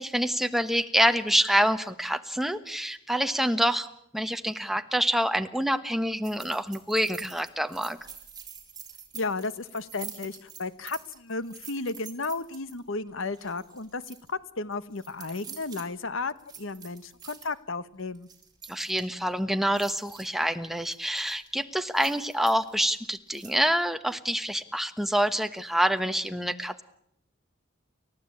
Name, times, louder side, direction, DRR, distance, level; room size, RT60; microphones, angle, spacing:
voice 1, 0.0-3.9 4.1-8.0 18.7-26.8, equal, ahead, 9 dB, 1.2 m, -26 dB
sound 1, 6.2-12.8 13.3-14.3 14.7-15.8 16.4-17.5 18.0-19.2 19.6-20.4 20.8-21.5 21.9-23.0 23.3-23.7, right 8 dB, 20° right, 4.7 m, -46 dB
voice 2, 9.1-18.3, left 3 dB, 70° left, 14 dB, 1.2 m, -34 dB
30.0 x 14.5 x 8.7 m, 0.74 s
head